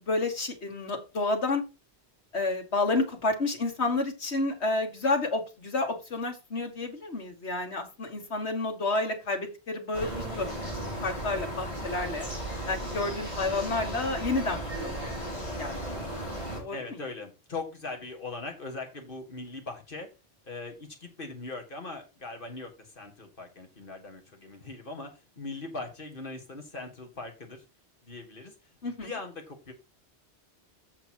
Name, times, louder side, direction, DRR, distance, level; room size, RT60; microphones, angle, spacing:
voice 1, 0.0-1.6 2.3-10.7 11.0-12.3 12.7-15.1 15.6-15.8 16.6-16.8 28.8-29.1, left 2 dB, 80° left, 3 dB, 2.2 m, -30 dB
sound 1, 9.9-16.6, right 1 dB, 30° left, 3.8 m, -35 dB
voice 2, 16.7-20.1 20.5-25.1 25.4-27.6 28.0-28.5 29.0-29.7, left 3 dB, 55° left, 4 dB, 2.1 m, -40 dB
7.9 x 6.7 x 4.6 m, 0.29 s
omnidirectional pair, 1.1 m